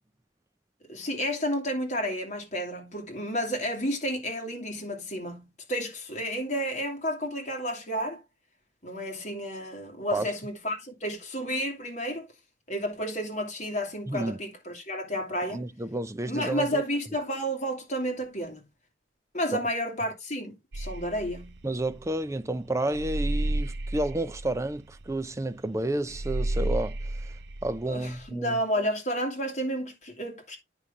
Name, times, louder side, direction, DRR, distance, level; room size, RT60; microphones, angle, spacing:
voice 1, 0.8-8.2 8.8-12.3 12.7-15.6 16.3-18.6 19.3-21.6 27.9-30.6, equal, 40° left, 2.5 m, -31 dB
voice 2, 14.1-14.4 15.5-16.8 21.6-27.0 27.6-28.6, right 1 dB, 15° right, 0.5 m, -30 dB
sound 1, 20.7-28.3, right 1 dB, 60° right, 0.6 m, -32 dB
9.6 x 5.5 x 3.6 m
head